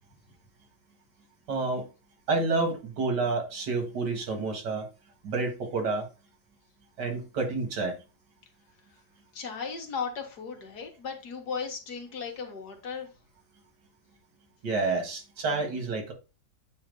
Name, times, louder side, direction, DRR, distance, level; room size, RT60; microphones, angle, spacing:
voice 1, 1.5-1.9 2.3-4.9 5.2-6.1 7.0-8.0 14.6-16.1, right 3 dB, 90° right, 2.4 m, -29 dB
voice 2, 9.3-13.1, left 5 dB, 75° left, 2.0 m, -36 dB
8.5 x 2.8 x 5.2 m
omnidirectional pair, 1.8 m